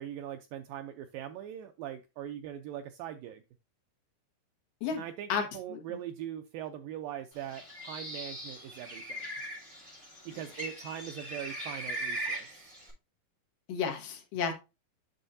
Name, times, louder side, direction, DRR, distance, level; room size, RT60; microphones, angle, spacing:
voice 1, 0.0-3.4 5.0-9.3 10.3-12.7, right 11 dB, 85° right, 7 dB, 2.0 m, -41 dB
Bird, 7.4-12.9, right 1 dB, 10° right, 4.3 m, -40 dB
voice 2, 13.7-14.5, left 6 dB, 65° left, 3 dB, 2.5 m, -32 dB
9.1 x 6.3 x 2.6 m, 0.27 s
omnidirectional pair, 4.6 m